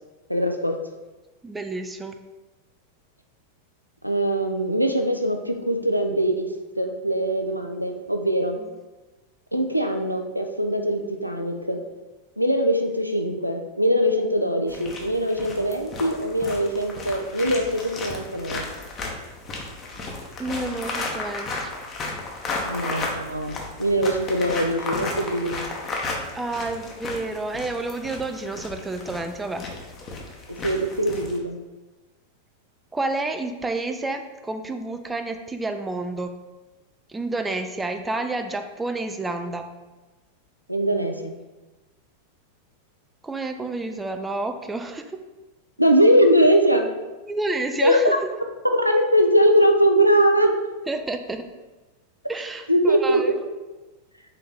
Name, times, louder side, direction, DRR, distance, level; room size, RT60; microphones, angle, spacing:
voice 1, 0.3-0.8 4.0-6.5 6.8-8.6 9.5-11.8 12.4-18.6 22.7-25.7 30.5-31.6 40.7-41.3 45.8-46.9 47.8-48.2 48.7-50.5 52.7-53.2, equal, 90° right, 4 dB, 0.4 m, -21 dB
voice 2, 1.4-2.1 8.6-8.8 20.4-21.7 26.3-29.7 32.9-36.4 37.1-39.7 43.2-45.2 47.3-48.3 50.9-51.4 52.3-53.4, right 2 dB, 10° right, 6 dB, 0.4 m, -29 dB
sound 1, 14.7-31.4, left 3 dB, 30° left, 0.8 m, -34 dB
4.2 x 3.1 x 3.9 m, 1.2 s
figure-of-eight pair, 90°, 0 cm